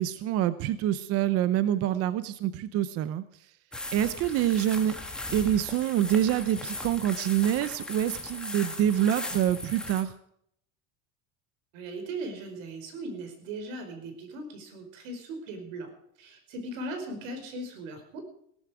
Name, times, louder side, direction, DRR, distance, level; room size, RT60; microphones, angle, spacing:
voice 1, 0.0-3.2 3.9-4.9 5.3-10.1, right 11 dB, 40° right, 14 dB, 0.6 m, -26 dB
sound 1, 3.7-10.0, left 1 dB, ahead, 1.7 m, -38 dB
voice 2, 11.7-15.9 16.2-18.2, right 2 dB, 85° right, 6 dB, 4.9 m, -38 dB
17.5 x 13.5 x 5.0 m, 0.70 s
cardioid pair, 160°, 37 cm